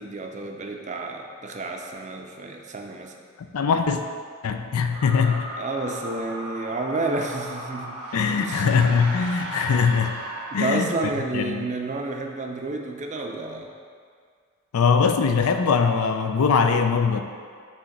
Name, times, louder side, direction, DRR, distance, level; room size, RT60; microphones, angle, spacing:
voice 1, 0.0-3.1 5.6-8.0 8.4-8.7 10.5-13.7, right 2 dB, 35° right, 3 dB, 0.5 m, -30 dB
voice 2, 3.5-4.0 4.4-5.5 8.1-10.2 10.5-10.9 11.3-11.7 14.7-17.2, left 5 dB, 85° left, 7 dB, 0.4 m, -21 dB
sound 1, 4.9-11.3, right 1 dB, 85° right, 1.0 m, -36 dB
6.3 x 3.1 x 5.7 m, 2.1 s
head